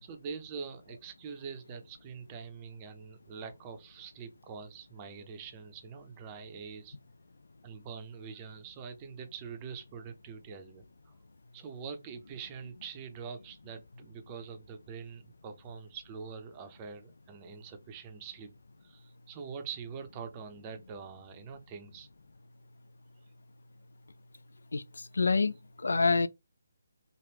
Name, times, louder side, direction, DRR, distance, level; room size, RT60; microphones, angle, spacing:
voice 1, 0.0-7.0 7.6-11.1 11.5-18.5 18.8-22.1, right 6 dB, 20° right, 0.6 m, -44 dB
voice 2, 24.7-26.3, left 4 dB, 65° left, 0.3 m, -27 dB
3.2 x 2.5 x 2.9 m
figure-of-eight pair, 145°, 0 cm